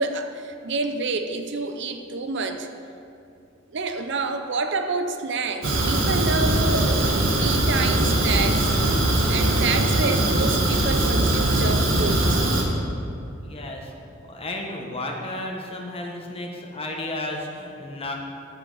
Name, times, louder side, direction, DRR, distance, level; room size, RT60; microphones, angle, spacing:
voice 1, 0.0-2.7 3.7-8.7 9.3-12.4, right 3 dB, 65° right, 7 dB, 0.7 m, -28 dB
Fire, 5.6-12.6, right 1 dB, 80° right, 1.6 m, -21 dB
voice 2, 13.4-13.9 14.3-18.1, left 1 dB, 30° left, 0 dB, 1.3 m, -33 dB
15.0 x 7.2 x 4.0 m, 2.6 s
head